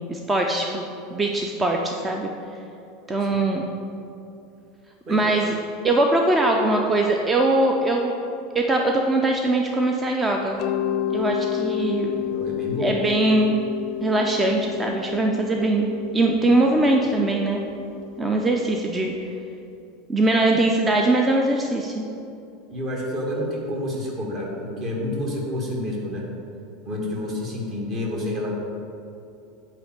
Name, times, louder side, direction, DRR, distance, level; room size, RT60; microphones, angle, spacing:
voice 1, 0.1-0.8 1.1-2.3 3.1-3.6 5.1-5.6 5.8-8.1 8.5-10.6 11.1-12.1 12.8-13.6 14.0-15.9 16.1-17.6 18.2-19.1 20.1-22.0, right 2 dB, 20° right, 2 dB, 0.6 m, -21 dB
voice 2, 5.1-5.4 12.0-13.0 22.7-26.2 26.8-28.5, left 1 dB, 35° right, -2 dB, 1.9 m, -29 dB
Mallet percussion, 10.6-19.3, left 12 dB, 45° left, 0.4 m, -30 dB
9.1 x 3.2 x 6.5 m, 2.7 s
figure-of-eight pair, 80°, 0 cm